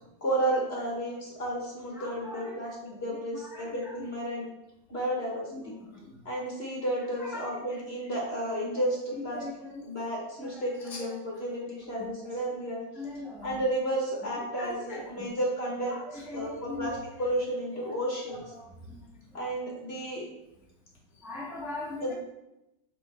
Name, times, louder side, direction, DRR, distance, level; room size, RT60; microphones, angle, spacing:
voice 1, 0.2-4.5 4.9-5.7 6.2-9.4 9.8-12.8 13.4-15.9 16.3-18.4 19.3-20.3 22.0-22.1, right 1 dB, 30° left, -3 dB, 1.6 m, -32 dB
voice 2, 1.9-2.5 2.9-3.0 3.3-4.1 5.5-5.6 5.9-6.2 7.2-7.6 9.2-9.9 10.4-11.1 11.9-12.1 12.9-13.6 14.6-15.3 15.9-17.0 17.8-17.9 18.3-19.0 19.3-19.5 21.2-22.1, left 2 dB, ahead, -4 dB, 1.0 m, -41 dB
7.4 x 4.4 x 4.4 m, 0.90 s
omnidirectional pair, 2.3 m